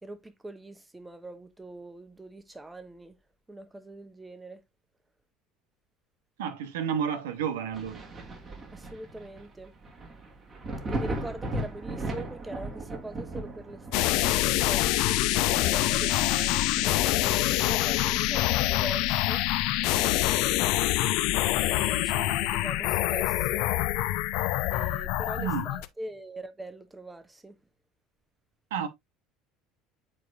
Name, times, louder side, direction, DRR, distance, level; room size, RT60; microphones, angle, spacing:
voice 1, 0.0-3.2 3.5-4.6 8.7-9.7 10.9-14.9 15.6-19.4 21.6-23.7 24.7-27.5, right 1 dB, 10° right, 1.1 m, -42 dB
voice 2, 6.4-8.0 25.4-25.7 28.7-28.9, right 8 dB, 75° right, 0.8 m, -31 dB
Thunder, 7.7-19.1 19.5-21.0 21.3-21.4 22.0-23.3 24.7-24.8, right 2 dB, 35° right, 2.9 m, -39 dB
sound 1, 13.9-25.9, left 15 dB, 60° left, 0.5 m, -25 dB
8.9 x 4.7 x 2.4 m
hypercardioid pair, 65°, 0 cm